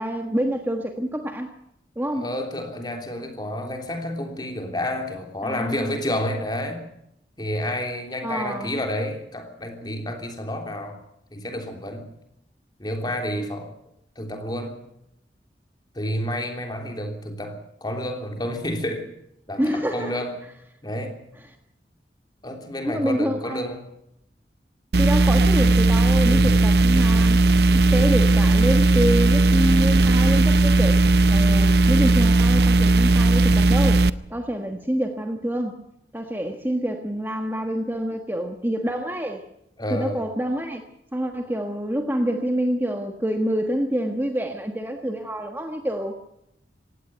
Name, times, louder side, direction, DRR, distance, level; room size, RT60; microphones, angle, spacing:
voice 1, 0.0-1.5 2.0-2.2 5.4-6.0 8.2-8.7 19.6-20.1 22.8-23.6 25.0-27.4 27.7-35.8 36.1-39.4 39.9-40.8 41.1-46.2, equal, 10° right, 1.4 m, -27 dB
voice 2, 2.1-6.9 7.4-11.0 11.3-12.1 12.8-13.7 14.1-14.8 15.9-19.1 19.5-20.3 20.8-21.2 22.4-23.8 26.2-26.6 39.8-40.2, left 1 dB, 25° left, 3.3 m, -30 dB
sound 1, 24.9-34.1, right 2 dB, 65° right, 0.7 m, -17 dB
17.5 x 17.0 x 9.0 m
head